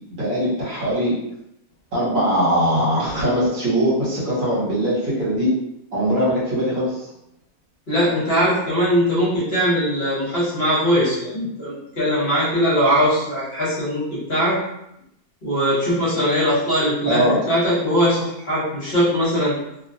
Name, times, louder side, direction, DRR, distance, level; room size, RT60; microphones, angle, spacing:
voice 1, 0.2-1.1 1.9-5.5 5.9-7.0 17.0-17.4, equal, 65° right, -7 dB, 1.4 m, -21 dB
voice 2, 7.9-14.6 15.4-19.5, equal, 45° left, -8 dB, 1.1 m, -20 dB
2.8 x 2.2 x 2.6 m, 0.81 s
omnidirectional pair, 1.5 m